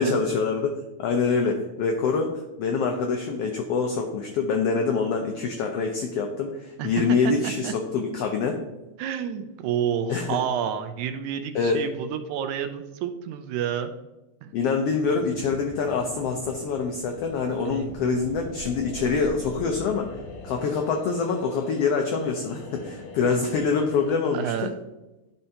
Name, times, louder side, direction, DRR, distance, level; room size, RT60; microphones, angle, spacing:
voice 1, 0.0-8.6 10.1-10.4 11.5-11.8 14.5-20.2 20.4-24.7, left 4 dB, 85° left, 3 dB, 1.3 m, -25 dB
voice 2, 9.0-13.9 14.4-14.5 17.7-18.2 24.3-24.7, right 9 dB, 80° right, 9 dB, 2.0 m, -30 dB
sound 1, 14.8-24.1, left 2 dB, 55° left, 1.7 m, -41 dB
11.5 x 4.4 x 2.8 m, 1.0 s
omnidirectional pair, 3.5 m